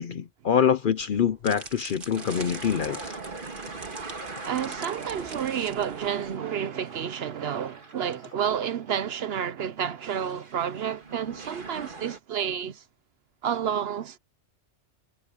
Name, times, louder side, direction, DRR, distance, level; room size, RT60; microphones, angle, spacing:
voice 1, 0.0-3.2, left 7 dB, 55° left, 0.7 m, -25 dB
sound 1, 1.0-6.3, right 3 dB, 85° right, 2.7 m, -45 dB
sound 2, 2.1-8.7 9.1-9.2 10.0-12.2, right 3 dB, 45° right, 1.9 m, -41 dB
voice 2, 4.4-12.8 13.4-14.2, right 8 dB, 60° right, 0.9 m, -30 dB
omnidirectional pair, 1.3 m